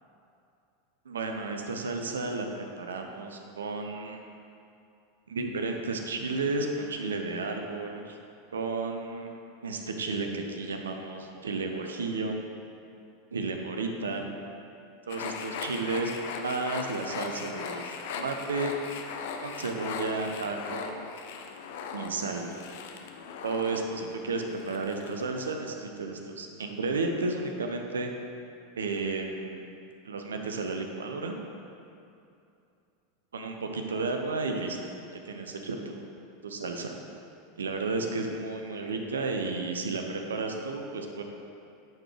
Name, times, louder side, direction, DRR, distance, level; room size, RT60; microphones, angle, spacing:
voice 1, 1.1-4.2 5.3-8.2 8.5-9.3 9.6-12.4 13.3-14.2 15.1-18.7 19.4-20.9 21.9-22.6 23.4-28.1 28.8-29.7 30.0-31.4 33.3-34.8 35.3-36.0 36.4-37.0 37.6-41.2, right 3 dB, 75° right, 4 dB, 0.5 m, -32 dB
sound 1, 15.1-25.5, left 6 dB, 60° left, 0.5 m, -39 dB
10.5 x 4.0 x 3.2 m, 2.6 s
figure-of-eight pair, 85°, 0 cm